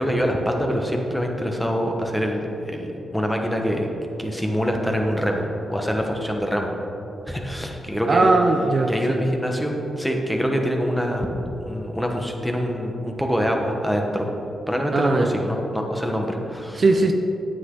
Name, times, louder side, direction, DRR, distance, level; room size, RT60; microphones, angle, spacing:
voice 1, 0.0-3.9 4.2-6.7 7.3-8.3 8.9-11.3 11.6-14.3 14.7-16.8, equal, 5° left, 2 dB, 1.2 m, -25 dB
voice 2, 8.1-9.2 14.9-15.3 16.8-17.1, right 3 dB, 50° right, 4 dB, 0.6 m, -19 dB
9.3 x 8.2 x 3.9 m, 3.0 s
cardioid pair, 75°, 0 cm